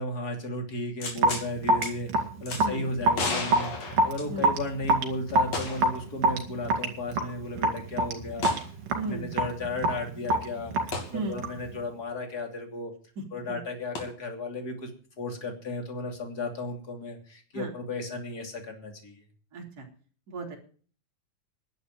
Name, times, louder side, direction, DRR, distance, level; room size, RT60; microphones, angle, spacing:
voice 1, 0.0-3.7 4.0-8.5 9.0-12.9 13.3-14.9 15.2-19.2, left 2 dB, 30° left, 3 dB, 3.0 m, -34 dB
Handgun Clip Magazine Shot, 1.0-1.5 1.8-1.9 2.5-2.6 3.1-4.7 5.5-6.0 6.3-6.4 8.4-8.7 10.9-11.1 13.9-14.0, left 3 dB, 50° left, 3.9 m, -33 dB
Raindrop / Drip, 1.2-11.7, right 2 dB, 75° right, 3.9 m, -27 dB
voice 2, 8.9-9.3 11.1-11.4 13.5-13.6 17.5-17.7 19.5-19.9 20.3-20.6, right 2 dB, 30° right, -1 dB, 3.4 m, -34 dB
11.5 x 8.0 x 9.1 m, 0.43 s
omnidirectional pair, 3.9 m